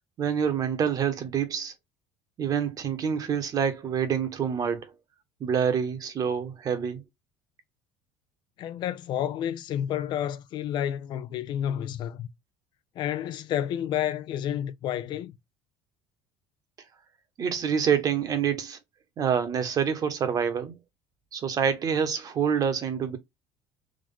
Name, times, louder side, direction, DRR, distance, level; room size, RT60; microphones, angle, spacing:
voice 1, 0.2-1.7 2.4-4.9 5.4-7.0 17.4-18.8 19.2-20.7 21.3-23.2, right 7 dB, 40° right, 1.3 m, -27 dB
voice 2, 8.6-12.3 13.0-15.4, left 10 dB, 55° left, 0.6 m, -30 dB
3.8 x 3.0 x 3.7 m
supercardioid pair, 105°, 9 cm